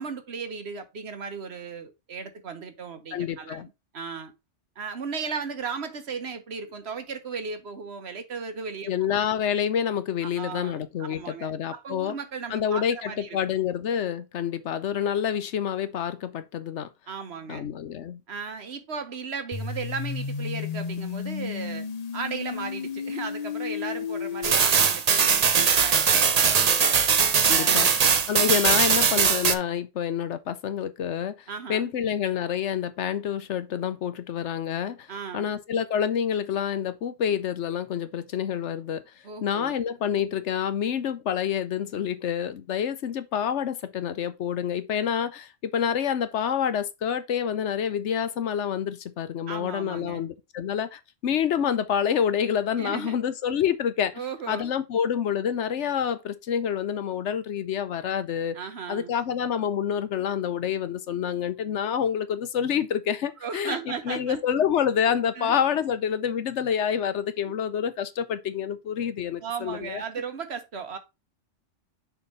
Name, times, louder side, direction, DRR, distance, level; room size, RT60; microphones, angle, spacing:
voice 1, 0.0-4.3 4.8-8.9 10.2-13.4 17.1-17.7 18.3-21.9 22.1-27.0 27.5-28.0 31.5-31.9 35.1-35.5 39.2-39.8 49.5-50.2 52.8-53.2 54.1-54.7 58.5-59.1 63.4-64.4 65.3-65.6 67.5-67.6 69.4-71.0, right 5 dB, 60° right, 1.3 m, -36 dB
voice 2, 3.1-3.7 8.9-12.1 12.5-16.9 17.5-18.2 27.5-28.0 28.3-31.3 31.7-35.1 35.3-39.0 39.4-54.1 54.5-58.6 58.9-63.8 64.1-70.0, left 8 dB, 70° left, 1.0 m, -27 dB
sound 1, 19.5-24.5, left 7 dB, 45° left, 0.6 m, -32 dB
sound 2, 24.4-29.5, right 6 dB, 40° right, 0.6 m, -20 dB
6.7 x 3.6 x 5.3 m
omnidirectional pair, 1.2 m